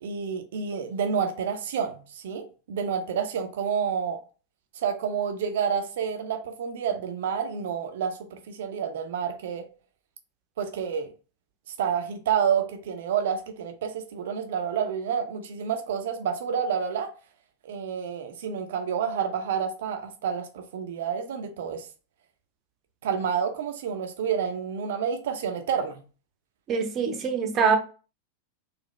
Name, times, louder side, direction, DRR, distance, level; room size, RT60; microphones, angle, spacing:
voice 1, 0.0-4.2 4.8-9.6 10.6-11.1 11.8-17.1 17.6-21.9 23.0-26.0, right 7 dB, 55° right, 0.7 m, -29 dB
voice 2, 26.7-27.8, right 6 dB, 30° right, 0.9 m, -24 dB
4.1 x 2.5 x 3.1 m
figure-of-eight pair, 90°, 0 cm